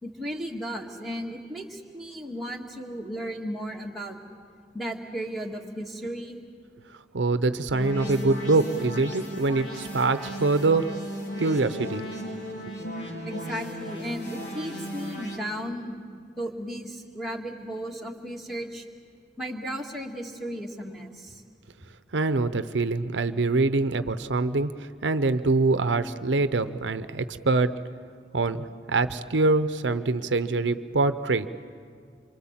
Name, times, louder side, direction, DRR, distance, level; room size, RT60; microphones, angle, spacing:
voice 1, 0.0-4.2 4.7-6.4 13.3-16.0 16.4-18.8 19.4-21.4, equal, ahead, -2 dB, 1.9 m, -35 dB
voice 2, 7.1-10.9 11.4-12.1 22.1-27.7 28.3-31.5, right 3 dB, 90° right, 12 dB, 0.8 m, -24 dB
sound 1, 7.7-15.4, equal, 70° left, 4.1 m, -36 dB
27.0 x 24.5 x 7.4 m, 2.1 s
head